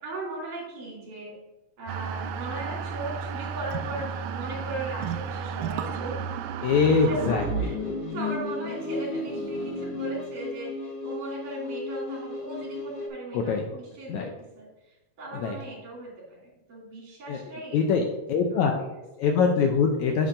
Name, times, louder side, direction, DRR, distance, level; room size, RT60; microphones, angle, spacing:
voice 1, 0.0-1.4 1.8-6.2 7.0-17.8 18.5-19.3, right 2 dB, 65° right, -4 dB, 3.9 m, -38 dB
sound 1, 1.9-10.0, right 6 dB, 80° right, 1.9 m, -34 dB
voice 2, 6.6-7.4 13.3-13.6 14.1-14.3 15.4-15.6 17.3-17.4 17.7-18.7 19.2-20.3, left 5 dB, 80° left, 3 dB, 1.7 m, -23 dB
sound 2, 7.1-13.1, left 3 dB, 55° left, 1.8 m, -33 dB
9.2 x 7.2 x 2.6 m, 1.0 s
omnidirectional pair, 4.0 m